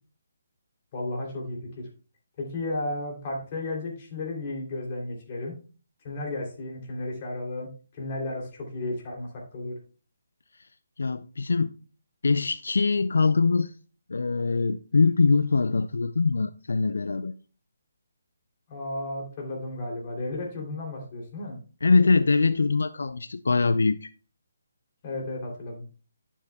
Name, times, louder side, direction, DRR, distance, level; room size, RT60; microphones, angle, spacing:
voice 1, 0.9-1.9 2.4-5.5 6.0-9.8 18.7-21.6 25.0-25.8, left 2 dB, 35° left, 3.0 m, -33 dB
voice 2, 11.0-11.7 12.2-13.7 14.1-17.3 21.8-24.1, left 4 dB, 80° left, 0.4 m, -23 dB
11.5 x 7.1 x 2.3 m
hypercardioid pair, 160°, 0 cm